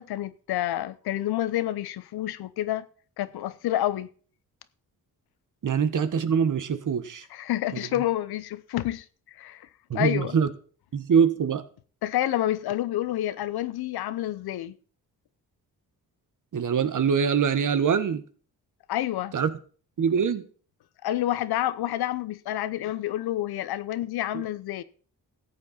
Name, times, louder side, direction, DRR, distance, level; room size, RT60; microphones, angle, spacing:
voice 1, 0.0-2.9 3.2-4.1 7.3-10.4 12.0-14.8 18.9-19.3 21.0-24.8, left 13 dB, 90° left, 0.8 m, -29 dB
voice 2, 5.6-7.3 9.9-10.5 10.9-11.6 16.5-18.2 19.3-19.5 20.0-20.5, right 7 dB, 55° right, 1.2 m, -23 dB
14.0 x 8.3 x 4.3 m
cardioid pair, 75°, 37 cm